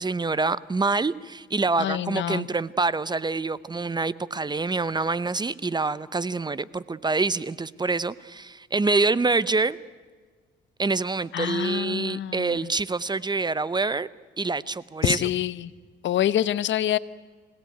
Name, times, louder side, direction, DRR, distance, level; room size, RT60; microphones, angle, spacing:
voice 1, 0.0-9.8 10.8-14.1 14.4-15.2, right 3 dB, 20° right, 18 dB, 0.8 m, -26 dB
voice 2, 1.8-2.5 11.3-12.6 15.0-15.7 16.0-17.0, left 11 dB, 70° left, 17 dB, 1.0 m, -26 dB
26.5 x 18.0 x 9.4 m, 1.5 s
cardioid pair, 90°, 20 cm